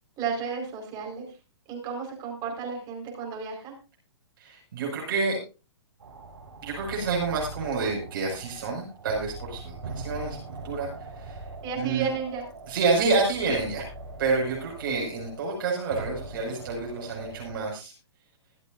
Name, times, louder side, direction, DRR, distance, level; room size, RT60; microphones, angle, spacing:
voice 1, 0.2-1.3 1.7-3.7 11.6-12.5, right 5 dB, 25° right, 1 dB, 5.0 m, -32 dB
voice 2, 4.4-5.4 6.6-11.4 11.7-12.1 12.7-13.9 14.2-17.9, right 4 dB, 50° right, -2 dB, 6.0 m, -28 dB
sound 1, 6.0-17.7, right 2 dB, 70° right, 6.0 m, -42 dB
24.0 x 8.2 x 2.7 m, 0.32 s
figure-of-eight pair, 115°, 15 cm